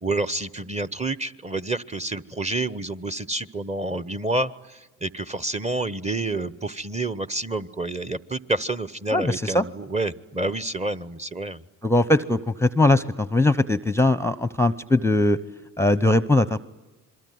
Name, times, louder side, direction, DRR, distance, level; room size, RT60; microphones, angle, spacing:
voice 1, 0.0-11.6, right 2 dB, 15° right, 15 dB, 1.1 m, -28 dB
voice 2, 9.1-9.7 11.8-15.4 15.8-16.6, left 2 dB, 5° left, 16 dB, 0.8 m, -20 dB
26.5 x 22.5 x 9.5 m, 1.1 s
hypercardioid pair, 60°, 39 cm